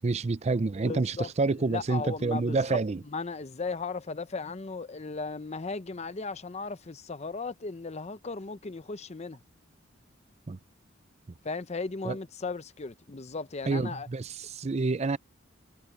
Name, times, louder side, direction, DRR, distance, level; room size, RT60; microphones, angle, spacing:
voice 1, 0.0-3.0 10.5-10.6 12.0-12.2 13.7-15.2, right 3 dB, 30° right, 0.4 m, -28 dB
voice 2, 0.9-1.3 1.6-9.4 11.4-14.1, left 4 dB, 30° left, 0.6 m, -36 dB
head